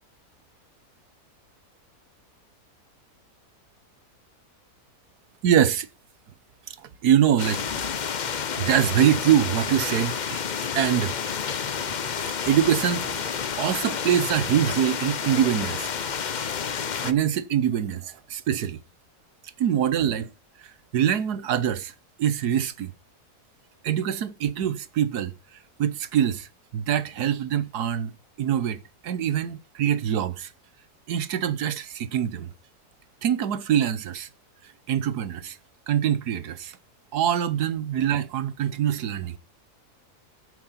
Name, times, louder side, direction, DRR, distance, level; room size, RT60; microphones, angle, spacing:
voice 1, 5.4-5.9 6.7-7.8 8.6-10.4 10.7-11.1 11.9-12.0 12.5-15.9 17.0-18.8 19.6-20.3 20.9-21.9 22.2-22.9 23.8-25.3 25.8-28.1 28.4-30.5 31.1-32.5 33.2-34.3 34.9-35.6 35.9-36.8 37.1-39.4, right 9 dB, 85° right, 1.5 m, -24 dB
sound 1, 7.4-17.1, left 7 dB, 50° left, 0.5 m, -30 dB
14.5 x 7.9 x 4.2 m
omnidirectional pair, 1.7 m